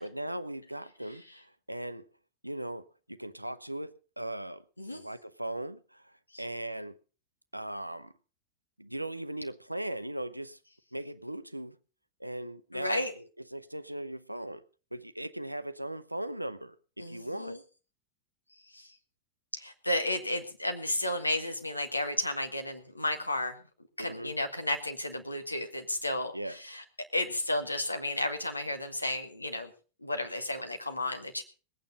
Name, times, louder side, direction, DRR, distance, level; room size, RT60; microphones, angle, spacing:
voice 1, 0.0-2.1 2.4-4.6 4.9-7.0 7.5-8.1 8.8-10.6 10.9-11.8 12.2-14.6 14.9-17.6 24.0-24.4 26.3-26.8, right 1 dB, 90° right, 0.7 m, -39 dB
voice 2, 12.7-13.1 17.0-17.6 18.7-18.9 19.5-23.6 24.0-26.8 27.1-29.7 30.0-31.4, left 1 dB, 85° left, 2.0 m, -33 dB
19.5 x 9.0 x 5.3 m
figure-of-eight pair, 90°, 0 cm